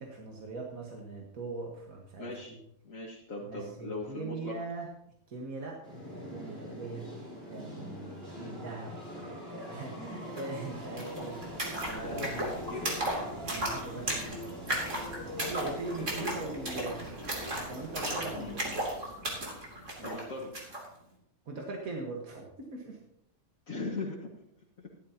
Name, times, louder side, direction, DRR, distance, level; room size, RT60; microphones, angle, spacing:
voice 1, 0.0-2.6 3.5-4.9 5.3-7.1 7.5-12.5 13.5-14.4 15.3-17.1 17.6-18.7 20.0-20.2 21.5-23.0, right 3 dB, 85° right, 0 dB, 2.0 m, -41 dB
voice 2, 2.2-2.6 2.8-4.6 8.3-8.6 12.0-13.0 16.0-16.4 18.3-18.6 20.0-20.5 23.7-24.3 24.8-24.9, left 3 dB, 70° left, -4 dB, 2.1 m, -39 dB
sound 1, 5.8-18.7, equal, 45° right, 4.0 m, -43 dB
sound 2, 10.4-10.5 10.7-20.9, right 1 dB, 60° right, 3.3 m, -36 dB
15.0 x 11.5 x 2.9 m, 0.74 s
omnidirectional pair, 1.5 m